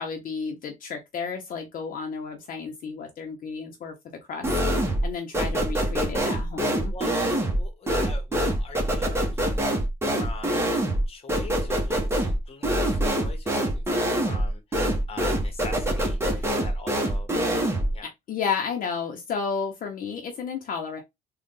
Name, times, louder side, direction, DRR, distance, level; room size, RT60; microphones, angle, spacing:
voice 1, 0.0-3.9 4.3-4.5 5.0-6.9 18.0-21.0, left 5 dB, 55° left, 0.9 m, -32 dB
sound 1, 4.4-5.1 5.3-18.0, right 1 dB, 15° right, 1.4 m, -25 dB
voice 2, 7.5-9.8 10.1-10.7 11.1-17.3 17.9-18.1, left 3 dB, 35° left, 1.2 m, -43 dB
3.7 x 2.5 x 3.7 m
cardioid pair, 110°, 17 cm